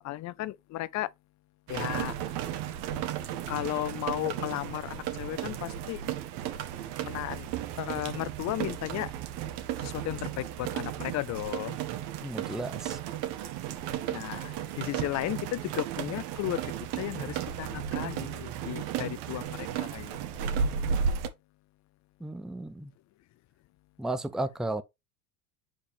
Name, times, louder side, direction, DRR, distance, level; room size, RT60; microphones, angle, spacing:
voice 1, 0.0-1.1 1.7-2.2 3.5-6.0 7.0-7.5 7.8-9.1 9.8-11.8 14.1-20.2, left 15 dB, 40° left, 0.6 m, -34 dB
sound 1, 1.7-21.3, right 8 dB, 60° right, 1.5 m, -34 dB
voice 2, 12.2-13.0 22.2-22.9 24.0-24.8, right 2 dB, ahead, 0.6 m, -34 dB
7.6 x 4.3 x 3.3 m
supercardioid pair, 100°, 46 cm